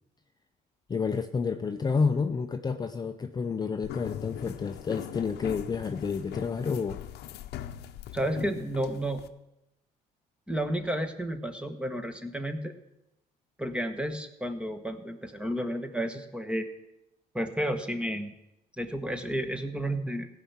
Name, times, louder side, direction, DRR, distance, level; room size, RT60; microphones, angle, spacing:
voice 1, 0.9-7.0, left 5 dB, 25° left, 7 dB, 0.6 m, -30 dB
sound 1, 3.8-9.3, left 11 dB, 75° left, 0.7 m, -41 dB
voice 2, 8.1-9.2 10.5-12.7 13.6-16.7 17.3-18.3 18.8-20.3, right 1 dB, 5° right, 8 dB, 1.1 m, -31 dB
16.5 x 5.7 x 7.2 m, 0.91 s
cardioid pair, 110°, 17 cm